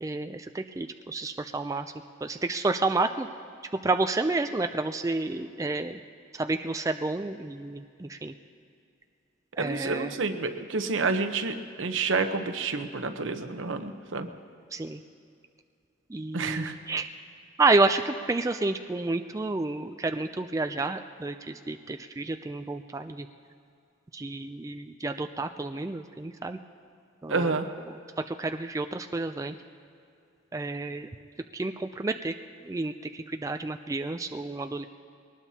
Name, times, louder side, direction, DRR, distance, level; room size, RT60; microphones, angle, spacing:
voice 1, 0.0-1.9 2.2-3.3 3.8-6.0 6.3-8.3 9.6-10.2 14.7-15.0 16.1-17.1 17.6-23.3 24.1-26.6 27.2-27.6 27.9-28.0 28.3-29.6 30.5-31.1 31.5-32.3 32.6-34.8, right 3 dB, 15° right, 7 dB, 0.3 m, -30 dB
voice 2, 9.6-14.3 16.3-16.8 27.3-27.7, right 4 dB, 80° right, 7 dB, 0.9 m, -29 dB
22.0 x 19.0 x 2.8 m, 2.5 s
head